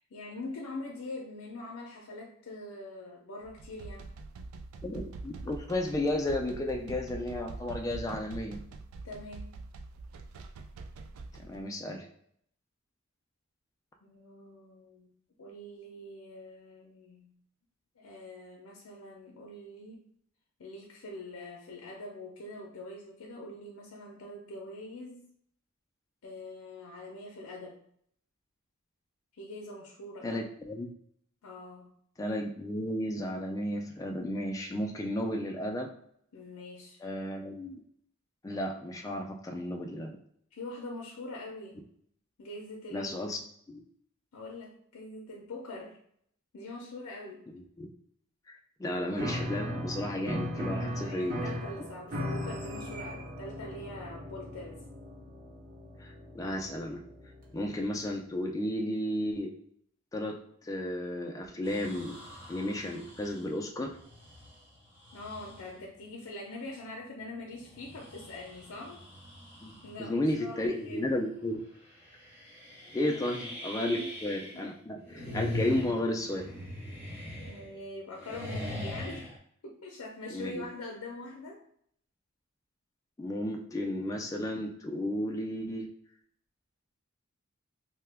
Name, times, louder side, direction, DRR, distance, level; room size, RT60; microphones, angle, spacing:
voice 1, 0.0-4.1 9.0-9.5 14.0-15.1 15.4-17.3 18.0-20.0 20.6-25.3 26.2-27.8 29.3-30.4 31.4-31.9 36.3-37.0 40.5-41.8 42.4-43.4 44.3-46.0 46.5-47.5 50.7-54.8 65.1-69.0 69.8-71.1 73.1-73.2 73.9-74.1 74.5-74.7 77.4-79.3 79.6-81.6, left 2 dB, 90° left, -1 dB, 0.6 m, -44 dB
sound 1, 3.4-11.6, right 3 dB, 70° right, 0.3 m, -44 dB
voice 2, 4.8-8.6 11.4-12.1 30.2-30.9 32.2-35.9 37.0-37.8 38.4-40.2 42.9-43.4 43.7-43.8 47.5-47.9 48.5-51.4 56.0-57.0 57.5-59.5 60.1-62.2 62.5-63.9 69.6-71.6 72.9-76.5 80.3-80.6 83.2-85.9, left 1 dB, 15° left, 2 dB, 0.3 m, -33 dB
Piano, 49.1-57.6, equal, 40° right, 0.8 m, -38 dB
sound 2, 61.6-65.8 66.4-66.5 67.5-70.1 70.5-70.9 71.2-71.3 71.8-74.7 75.0-77.8 78.1-79.4, left 1 dB, 10° right, 0.8 m, -42 dB
2.8 x 2.2 x 3.3 m, 0.67 s
head